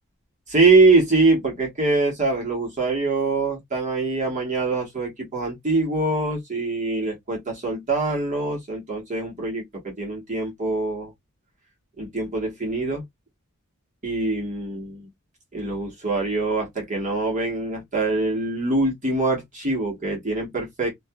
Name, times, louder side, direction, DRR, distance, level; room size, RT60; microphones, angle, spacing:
voice 1, 0.5-11.1 12.0-13.0 14.0-15.1 15.5-20.9, right 3 dB, 35° right, 1.1 m, -23 dB
2.5 x 2.3 x 2.6 m
head